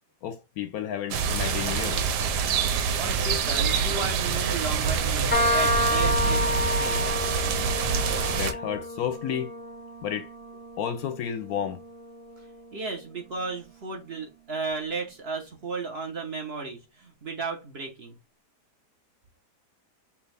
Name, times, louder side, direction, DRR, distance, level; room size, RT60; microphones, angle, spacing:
voice 1, 0.2-2.1 8.4-9.5 10.0-10.3 10.8-11.8, left 9 dB, 70° left, 0.9 m, -31 dB
sound 1, 1.1-8.5, right 6 dB, 90° right, 1.3 m, -26 dB
voice 2, 2.9-7.0 12.7-18.2, right 4 dB, 45° right, 1.0 m, -34 dB
sound 2, 5.3-12.7, left 1 dB, 15° left, 0.4 m, -30 dB
6.1 x 2.3 x 3.3 m
omnidirectional pair, 1.8 m